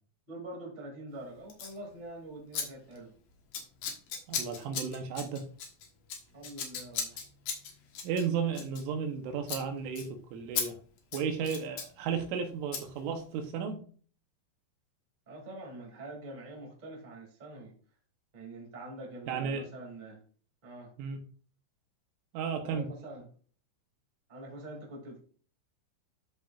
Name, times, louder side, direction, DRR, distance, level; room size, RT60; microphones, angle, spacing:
voice 1, 0.3-3.1 6.3-7.2 15.2-17.7 18.3-20.2 20.6-20.9 22.6-23.2 24.3-25.2, right 1 dB, 20° right, 1.2 m, -45 dB
Scissors, 1.5-1.8 2.5-2.6 2.9-3.2 3.5-9.2 9.4-9.6 9.9-10.1 10.5-10.7 11.0-11.9 12.7-12.8, left 6 dB, 65° left, 2.3 m, -37 dB
voice 2, 4.3-5.4 8.0-10.8 11.1-13.8 19.3-19.6 21.0-21.2 22.3-22.9, right 6 dB, 80° right, 3.4 m, -34 dB
13.0 x 5.4 x 2.5 m
omnidirectional pair, 5.7 m